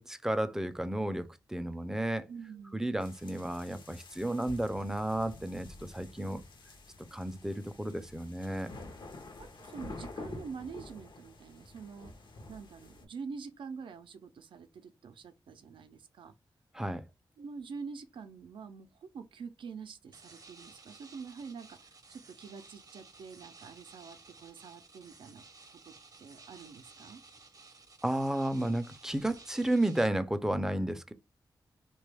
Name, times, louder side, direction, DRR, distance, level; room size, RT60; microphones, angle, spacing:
voice 1, 0.0-2.3 2.7-6.4 7.1-8.7 16.7-17.0 28.0-31.1, right 1 dB, 5° right, 0.4 m, -32 dB
voice 2, 2.3-2.9 9.4-12.1 12.5-16.3 17.4-25.4 25.7-25.9 26.2-27.2, right 5 dB, 90° right, 0.4 m, -46 dB
sound 1, 3.0-13.1, left 2 dB, 75° left, 0.6 m, -49 dB
sound 2, 20.1-30.1, right 3 dB, 45° right, 0.7 m, -55 dB
2.9 x 2.2 x 3.2 m
wide cardioid pair, 85°, 8 cm